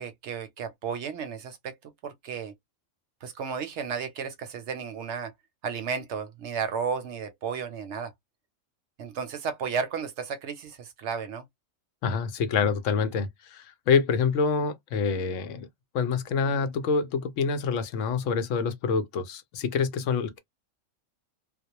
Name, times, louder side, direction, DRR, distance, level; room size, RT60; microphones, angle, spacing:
voice 1, 0.0-1.7 2.0-2.5 3.2-5.3 5.6-8.1 9.0-11.4, right 6 dB, 65° right, 0.8 m, -33 dB
voice 2, 12.0-15.7 15.9-20.4, left 5 dB, 75° left, 0.9 m, -26 dB
2.3 x 2.0 x 2.8 m
omnidirectional pair, 1.4 m